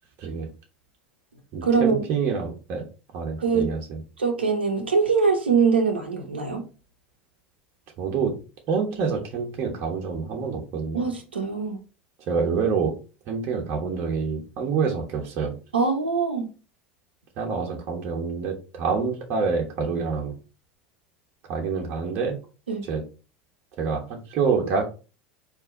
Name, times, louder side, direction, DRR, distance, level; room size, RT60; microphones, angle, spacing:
voice 1, 0.2-0.5 1.5-2.9 3.1-4.0 8.0-8.3 8.7-11.0 12.3-13.0 13.3-15.6 17.4-20.3 21.5-22.4 22.9-23.0 23.8-24.8, right 5 dB, 50° right, 0 dB, 1.3 m, -27 dB
voice 2, 1.6-2.0 3.4-3.7 4.2-6.6 10.9-11.8 15.7-16.5 22.7-22.8, right 5 dB, 85° right, 3 dB, 0.9 m, -23 dB
4.6 x 2.8 x 3.8 m, 0.33 s
hypercardioid pair, 80°, 6 cm